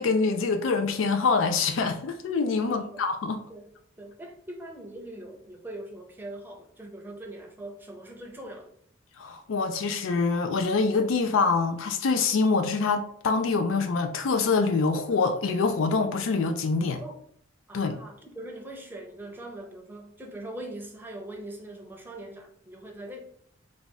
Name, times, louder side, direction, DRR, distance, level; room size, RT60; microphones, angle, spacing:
voice 1, 0.0-3.4 9.2-17.0 17.7-18.0, left 4 dB, 80° left, 0.4 m, -25 dB
voice 2, 2.6-3.1 3.5-8.7 17.0-17.2 17.7-23.2, right 1 dB, 10° right, 0.6 m, -42 dB
3.4 x 2.3 x 4.0 m
head